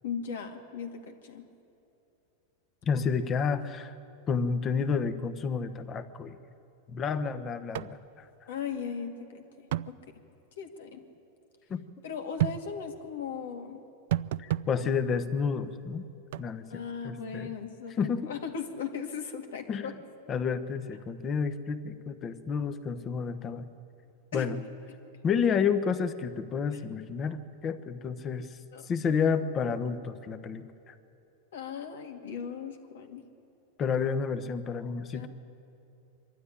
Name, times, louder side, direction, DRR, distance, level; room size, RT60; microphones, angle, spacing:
voice 1, 0.0-1.5 2.9-3.0 8.5-10.0 10.6-11.0 12.0-13.8 16.7-19.9 20.3-20.4 24.3-24.5 28.7-28.9 31.5-33.2 35.1-35.3, left 6 dB, 80° left, 4 dB, 2.3 m, -38 dB
voice 2, 2.9-3.9 4.3-6.4 6.9-8.3 11.7-11.8 14.4-16.0 16.4-16.7 17.0-17.5 18.0-18.3 19.7-19.9 20.3-23.7 24.3-24.6 25.2-28.6 28.9-30.9 33.8-35.3, left 6 dB, 30° left, 10 dB, 1.1 m, -30 dB
sound 1, 7.7-7.9 8.2-8.3 9.7-9.9 12.4-12.6 14.1-14.7 16.3-16.5, right 14 dB, 70° right, 0.4 m, -29 dB
23.0 x 12.5 x 9.9 m, 2.8 s
supercardioid pair, 130°, 0 cm